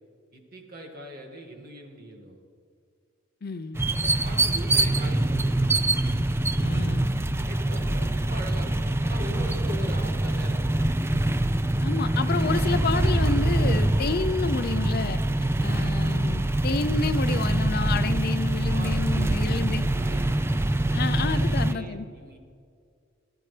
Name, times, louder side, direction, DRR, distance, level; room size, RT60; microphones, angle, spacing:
voice 1, 0.3-2.4 3.9-5.5 7.5-10.6 18.7-22.4, right 1 dB, 50° right, 1 dB, 2.0 m, -41 dB
voice 2, 3.4-3.8 6.6-7.1 11.8-15.2 15.6-19.8 20.9-22.0, left 4 dB, 55° left, 11 dB, 0.5 m, -30 dB
sound 1, 3.7-21.7, right 1 dB, 15° right, 0.4 m, -24 dB
19.5 x 12.5 x 3.3 m, 2.3 s
head